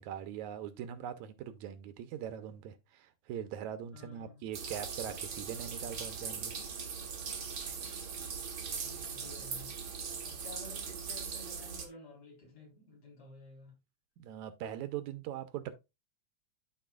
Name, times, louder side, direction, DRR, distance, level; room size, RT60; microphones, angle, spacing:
voice 1, 0.0-6.6 14.2-15.7, right 10 dB, 80° right, 2.2 m, -41 dB
voice 2, 3.9-4.5 8.7-9.8 10.3-13.7, left 2 dB, 55° left, 5.1 m, -52 dB
sound 1, 4.5-11.9, right 6 dB, 50° right, 1.3 m, -40 dB
13.0 x 4.7 x 2.3 m
omnidirectional pair, 3.4 m